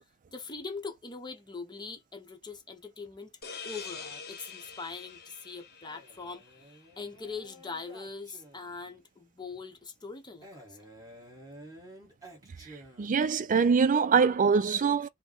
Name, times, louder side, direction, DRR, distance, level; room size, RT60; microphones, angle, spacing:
voice 1, 0.3-3.3 3.6-6.4 7.0-10.8, left 4 dB, 20° left, 0.8 m, -42 dB
sound 1, 3.4-6.9, left 5 dB, 45° left, 1.0 m, -45 dB
Male speech man speaking, 5.8-8.9 10.4-13.4, right 1 dB, 15° right, 1.6 m, -51 dB
voice 2, 13.0-15.1, right 5 dB, 35° right, 0.4 m, -23 dB
5.5 x 2.2 x 4.4 m
head